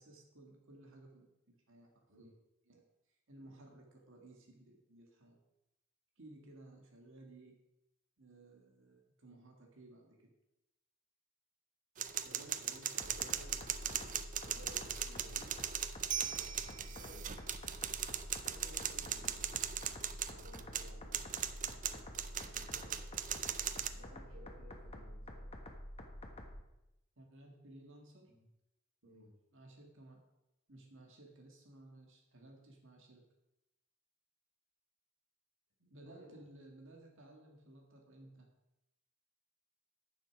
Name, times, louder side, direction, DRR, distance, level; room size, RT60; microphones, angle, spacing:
voice 1, 0.0-2.3 2.7-2.8 3.1-5.4 6.2-7.6 8.2-10.3 27.2-28.3 29.5-30.2 30.7-33.2 35.9-38.5, right 2 dB, 65° right, 1 dB, 2.1 m, -58 dB
sound 1, 12.0-23.9, right 9 dB, 40° right, 0.6 m, -39 dB
voice 2, 12.2-14.2 14.4-15.7 16.3-17.2 18.4-19.8 20.3-23.0 23.9-25.5 28.3-28.4 29.0-29.3 35.8-36.4, equal, 90° right, -10 dB, 3.9 m, -58 dB
sound 2, 13.0-26.6, left 1 dB, 30° left, 1.4 m, -49 dB
10.0 x 7.2 x 6.0 m, 0.91 s
head